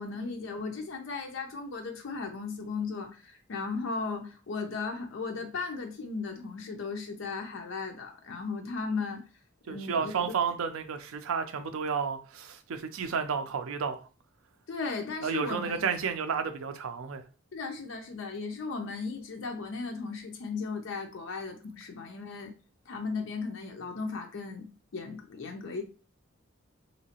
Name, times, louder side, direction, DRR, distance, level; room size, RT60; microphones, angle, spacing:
voice 1, 0.0-9.2 9.7-10.3 14.7-15.9 17.5-22.5 22.9-24.7 24.9-25.8, left 4 dB, 65° left, 0.5 m, -36 dB
voice 2, 9.7-14.0 15.2-17.2, right 6 dB, 80° right, 0.4 m, -31 dB
3.0 x 2.8 x 2.8 m
head